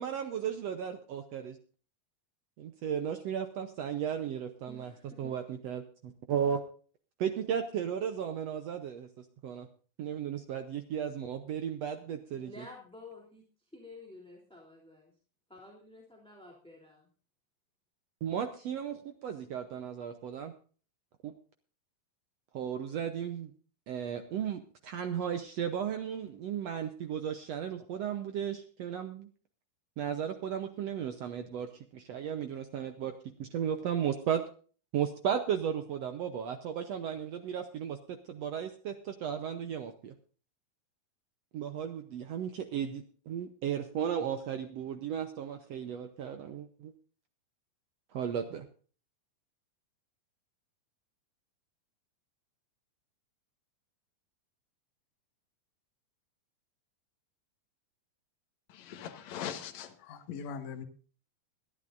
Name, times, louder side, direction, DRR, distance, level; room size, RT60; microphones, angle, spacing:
voice 1, 0.0-1.6 2.6-4.9 5.2-6.6 7.2-9.7 10.0-12.5 18.2-20.5 21.2-21.3 22.5-23.5 23.9-29.3 30.0-33.1 33.4-34.4 34.9-40.1 41.5-46.9 48.1-48.6, right 8 dB, 85° right, 1.4 m, -35 dB
voice 2, 4.7-5.3 12.3-15.1 15.5-17.1, left 2 dB, ahead, 2.6 m, -51 dB
voice 3, 58.7-60.8, left 8 dB, 60° left, 2.3 m, -41 dB
21.5 x 12.0 x 2.6 m
omnidirectional pair, 4.2 m